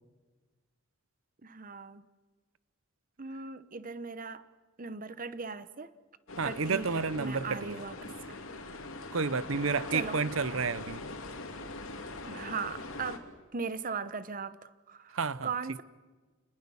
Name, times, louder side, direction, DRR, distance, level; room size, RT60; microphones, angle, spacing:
voice 1, 1.4-2.0 3.2-4.4 4.8-5.9 6.4-8.4 9.6-10.2 12.3-13.2 13.5-15.8, right 5 dB, 40° right, 1.0 m, -39 dB
sound 1, 6.3-13.2, left 2 dB, 75° left, 2.7 m, -42 dB
voice 2, 6.4-7.8 9.1-11.0 15.1-15.5, right 5 dB, 70° right, 0.8 m, -30 dB
29.5 x 20.5 x 7.1 m
head